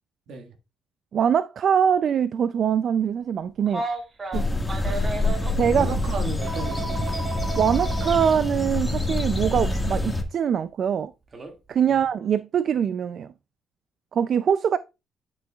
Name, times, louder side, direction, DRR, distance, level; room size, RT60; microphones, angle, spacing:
voice 1, 1.1-3.8 4.3-4.5 5.6-6.0 7.6-11.1 11.7-13.3 14.1-14.8, right 8 dB, 60° right, 0.4 m, -23 dB
Telephone, 3.7-5.5 6.4-8.3 9.7-9.8 11.3-11.5, right 3 dB, 35° right, 2.1 m, -33 dB
sound 1, 4.3-10.2, left 2 dB, 10° left, 1.8 m, -26 dB
voice 2, 5.8-7.0 11.9-12.0, right 3 dB, 75° right, 1.7 m, -35 dB
11.0 x 6.3 x 2.4 m
cardioid pair, 90°, 0 cm